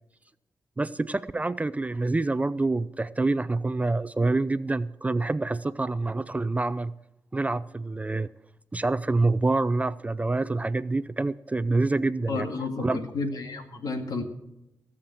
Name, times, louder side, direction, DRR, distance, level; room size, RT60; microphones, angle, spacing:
voice 1, 0.8-6.9 7.3-8.3 8.7-12.5 12.8-13.0, right 2 dB, 20° right, 16 dB, 0.4 m, -26 dB
voice 2, 12.3-14.2, left 3 dB, 70° left, 5 dB, 2.2 m, -31 dB
16.5 x 7.2 x 7.3 m, 0.89 s
cardioid pair, 80°, 7 cm